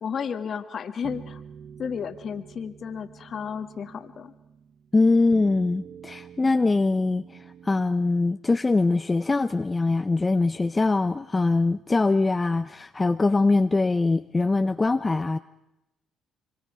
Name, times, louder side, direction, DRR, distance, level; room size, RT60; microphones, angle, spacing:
voice 1, 0.0-1.4 1.8-4.3, left 7 dB, 50° left, 8 dB, 1.4 m, -33 dB
sound 1, 1.0-8.2, right 7 dB, 50° right, 1.2 m, -46 dB
voice 2, 4.9-15.4, left 3 dB, 25° left, 9 dB, 0.7 m, -23 dB
25.0 x 24.0 x 4.9 m, 0.92 s
hypercardioid pair, 60°, 0 cm